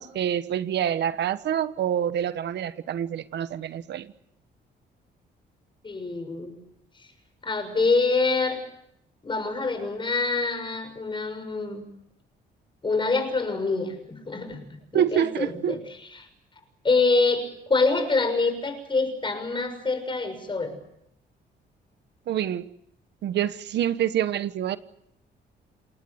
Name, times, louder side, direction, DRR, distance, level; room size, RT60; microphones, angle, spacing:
voice 1, 0.0-4.1 14.9-15.8 22.3-22.7 23.2-24.8, right 10 dB, 75° right, 12 dB, 1.3 m, -26 dB
voice 2, 5.8-6.6 7.4-8.6 9.2-11.8 12.8-14.7 14.9-16.3 16.8-20.8, left 3 dB, 25° left, 9 dB, 6.5 m, -26 dB
28.5 x 19.5 x 8.0 m, 0.75 s
cardioid pair, 105°, 18 cm